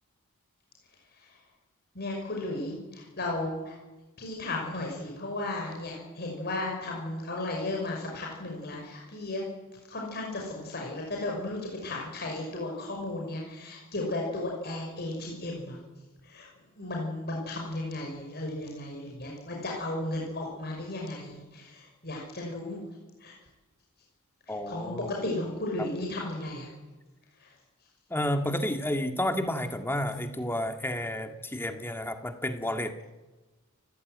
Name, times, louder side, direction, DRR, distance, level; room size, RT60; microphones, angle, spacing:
voice 1, 1.9-3.7 4.2-9.4 9.9-15.8 16.2-16.5 16.8-22.8 23.2-23.3 24.5-26.7 27.4-27.5, left 2 dB, 50° left, -1 dB, 5.9 m, -34 dB
voice 2, 24.5-25.1 28.1-33.0, left 1 dB, 10° left, 6 dB, 1.8 m, -31 dB
29.0 x 14.5 x 9.6 m, 1.2 s
head